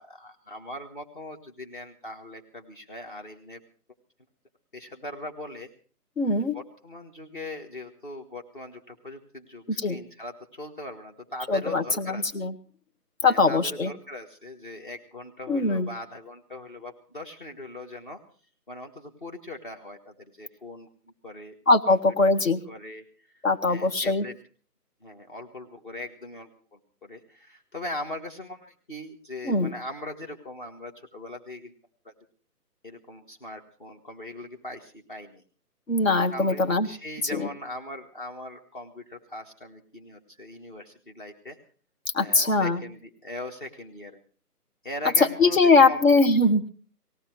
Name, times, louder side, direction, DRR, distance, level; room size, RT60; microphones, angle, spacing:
voice 1, 0.0-3.6 4.7-5.7 6.5-12.3 13.2-18.2 18.7-20.9 21.2-21.5 21.9-22.0 22.2-22.3 22.7-24.3 25.0-31.7 32.0-32.1 32.8-35.4 36.3-41.6 42.2-44.2 44.8-46.0, left 1 dB, 30° left, 6 dB, 1.5 m, -40 dB
voice 2, 6.2-6.6 9.8-10.0 11.5-12.5 13.2-13.9 15.5-15.9 21.7-22.6 23.4-24.2 29.4-29.7 35.9-36.9 37.3-37.5 42.1-42.8 45.4-46.7, left 3 dB, 55° left, 8 dB, 2.0 m, -21 dB
18.5 x 15.5 x 4.6 m, 0.41 s
figure-of-eight pair, 165°, 48 cm